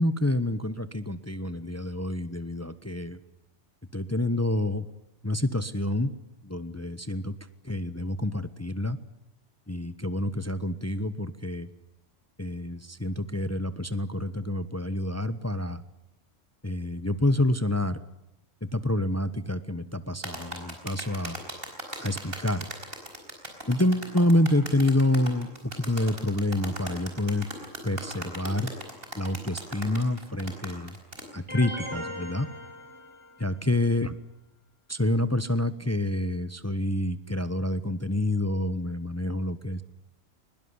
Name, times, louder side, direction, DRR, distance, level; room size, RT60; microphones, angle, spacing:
voice 1, 0.0-3.2 3.9-4.9 5.2-6.1 6.4-7.3 7.6-9.0 9.7-11.7 12.4-15.8 16.6-18.0 18.7-21.4 22.0-22.7 23.7-27.5 27.8-28.7 29.2-31.0 31.3-32.5 33.4-34.1 34.9-39.8, left 1 dB, 15° left, 13 dB, 0.9 m, -28 dB
sound 1, 20.2-31.3, right 1 dB, 45° right, 5.3 m, -39 dB
sound 2, 31.5-33.6, equal, 20° right, 4.2 m, -39 dB
22.0 x 21.0 x 9.8 m, 0.88 s
omnidirectional pair, 1.3 m